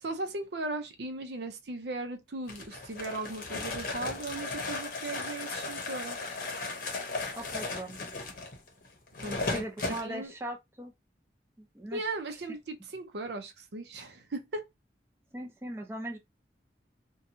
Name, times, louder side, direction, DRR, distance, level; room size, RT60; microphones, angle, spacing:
voice 1, 0.0-6.2 9.2-10.3 11.9-14.6, right 2 dB, 75° right, 0.6 m, -37 dB
sound 1, 2.5-10.1, left 3 dB, 50° left, 0.8 m, -36 dB
voice 2, 7.4-8.0 9.5-10.9 11.6-12.0 15.3-16.2, right 1 dB, 15° right, 0.6 m, -39 dB
2.7 x 2.2 x 2.6 m
head